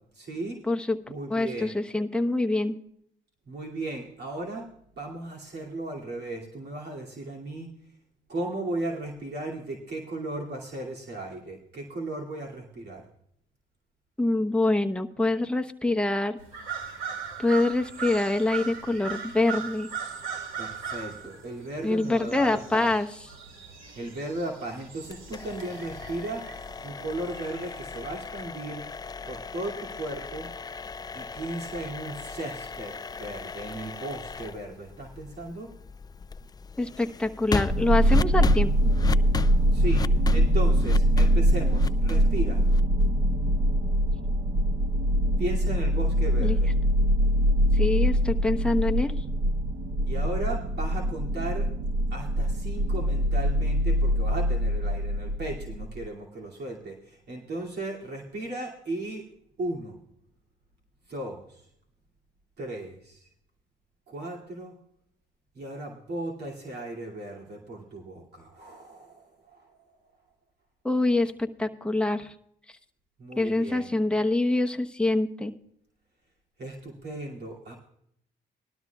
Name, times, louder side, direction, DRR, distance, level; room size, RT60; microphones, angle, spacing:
voice 1, 0.1-0.6 1.1-1.7 3.5-4.7 5.0-7.7 8.3-13.1 20.6-22.9 23.9-28.8 29.3-30.5 31.1-35.7 39.7-42.6 45.4-46.7 48.3-48.4 50.0-51.7 52.1-59.3 59.6-60.0 61.1-61.7 62.6-63.3 64.1-64.8 65.5-70.0 73.2-73.9 76.6-77.7, right 2 dB, 55° right, -2 dB, 2.6 m, -36 dB
voice 2, 0.7-1.0 1.3-2.8 14.2-16.4 17.4-19.9 21.8-23.1 36.8-38.9 46.4-46.6 47.7-49.1 70.8-72.3 73.4-75.5, left 2 dB, 5° left, 4 dB, 1.0 m, -25 dB
sound 1, 16.4-28.1, right 6 dB, 85° right, 2.4 m, -39 dB
sound 2, 25.1-43.0, left 4 dB, 20° left, 0.3 m, -37 dB
sound 3, 37.7-56.1, equal, 40° right, 0.9 m, -23 dB
19.0 x 12.5 x 2.4 m, 0.70 s
cardioid pair, 90°, 20 cm